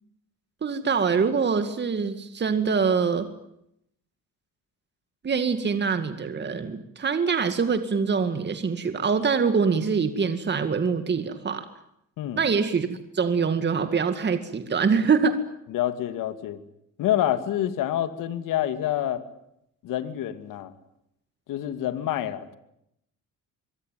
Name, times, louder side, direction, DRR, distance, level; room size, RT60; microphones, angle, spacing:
voice 1, 0.6-3.3 5.2-11.7 12.4-15.4, right 5 dB, 35° right, 9 dB, 2.2 m, -24 dB
voice 2, 15.7-16.6 17.0-19.2 19.8-20.7 21.5-22.5, left 12 dB, 85° left, 11 dB, 2.5 m, -27 dB
24.5 x 24.0 x 9.3 m, 0.78 s
cardioid pair, 110°, 32 cm